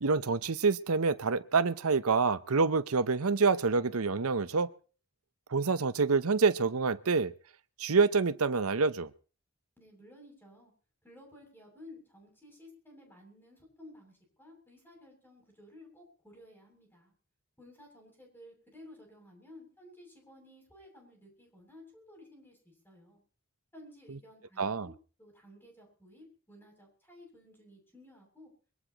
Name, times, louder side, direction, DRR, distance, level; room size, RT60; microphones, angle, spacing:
voice 1, 0.0-4.7 5.5-7.3 7.8-9.1 24.6-24.9, right 4 dB, 80° right, 0.8 m, -27 dB
voice 2, 9.8-10.7 11.0-17.1 17.6-23.2 23.7-24.9 25.2-28.5, left 1 dB, 10° left, 7.4 m, -55 dB
23.5 x 18.0 x 3.0 m
head